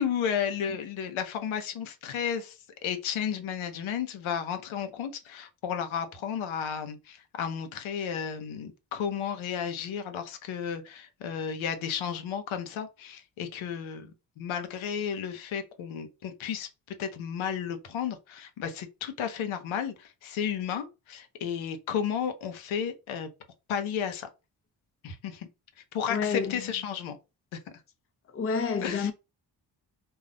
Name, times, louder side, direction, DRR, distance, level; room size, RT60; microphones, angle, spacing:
voice 1, 0.0-23.3 23.7-24.3 25.0-25.5 25.9-27.2 27.5-27.6 28.8-29.1, left 8 dB, 75° left, 0.7 m, -33 dB
voice 2, 26.1-26.7 28.3-29.1, left 5 dB, 30° left, 0.6 m, -29 dB
2.3 x 2.0 x 3.8 m
supercardioid pair, 45°, 48 cm